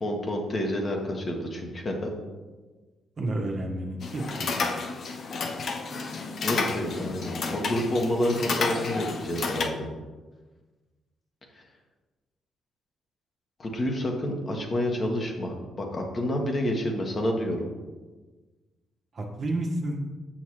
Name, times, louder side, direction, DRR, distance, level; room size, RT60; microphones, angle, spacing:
voice 1, 0.0-2.1 6.4-9.9 13.6-17.7, left 1 dB, 45° left, 1 dB, 1.5 m, -29 dB
voice 2, 3.2-4.5 19.1-20.0, right 1 dB, 50° right, 1 dB, 1.4 m, -30 dB
sound 1, 4.0-9.7, left 4 dB, 60° left, 0.7 m, -31 dB
7.1 x 6.4 x 3.2 m, 1.3 s
hypercardioid pair, 45°, 0 cm